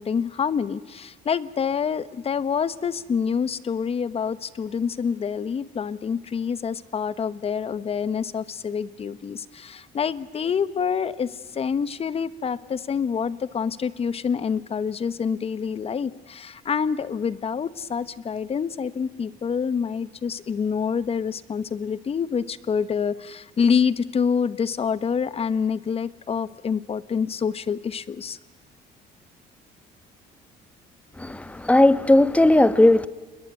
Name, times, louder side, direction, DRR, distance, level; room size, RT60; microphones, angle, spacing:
voice 1, 0.0-28.4, left 6 dB, 35° left, 1.1 m, -27 dB
voice 2, 31.2-33.1, left 1 dB, 10° left, 1.2 m, -17 dB
29.5 x 21.5 x 9.4 m
cardioid pair, 110°, 17 cm